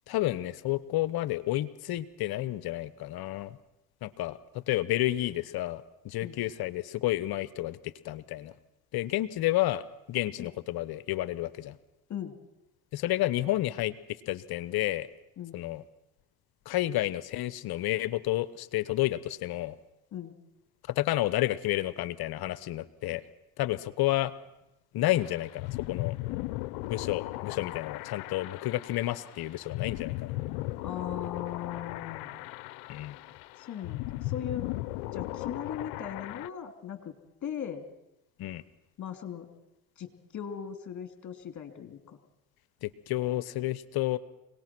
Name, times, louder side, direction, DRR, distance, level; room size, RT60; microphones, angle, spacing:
voice 1, 0.1-3.6 4.0-8.5 8.9-11.8 12.9-15.1 15.5-15.8 16.7-19.8 20.9-23.2 23.6-24.3 24.9-26.2 26.9-30.3 32.9-33.2 38.4-38.6 42.8-44.2, left 16 dB, 60° left, 17 dB, 1.0 m, -30 dB
sound 1, 25.1-36.5, left 19 dB, 80° left, 0.7 m, -37 dB
voice 2, 30.8-32.3 33.6-34.7 35.1-37.1 37.4-37.9 39.0-39.5 40.0-42.2, left 9 dB, 45° left, 7 dB, 2.9 m, -38 dB
25.0 x 19.0 x 6.1 m, 0.91 s
supercardioid pair, 75°, 42 cm